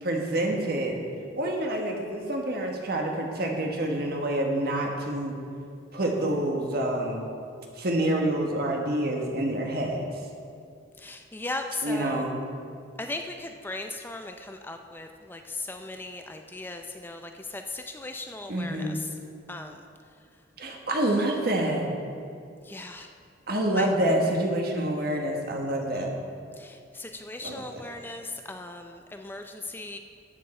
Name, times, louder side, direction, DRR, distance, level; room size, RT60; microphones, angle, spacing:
voice 1, 0.0-1.0 1.4-5.4 5.9-7.3 7.8-10.1 11.8-12.4 18.5-19.0 20.6-21.9 23.5-26.1 27.4-27.9, right 1 dB, 55° right, 1 dB, 1.4 m, -27 dB
voice 2, 11.0-12.3 13.0-19.1 19.5-19.9 22.6-23.1 23.8-23.9 26.6-30.0, left 2 dB, 10° left, 5 dB, 0.4 m, -37 dB
13.5 x 7.5 x 4.3 m, 2.4 s
head